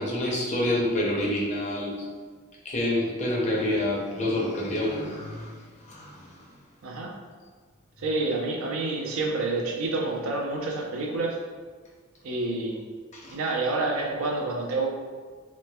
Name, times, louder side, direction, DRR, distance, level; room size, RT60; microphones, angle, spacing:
voice 1, 0.0-2.0 2.6-6.3 13.1-13.4, left 1 dB, 30° left, -3 dB, 0.5 m, -28 dB
voice 2, 6.8-7.2 8.0-11.4 12.2-12.8 13.3-14.9, right 2 dB, 70° right, 0 dB, 0.5 m, -28 dB
3.1 x 3.1 x 2.2 m, 1.5 s
head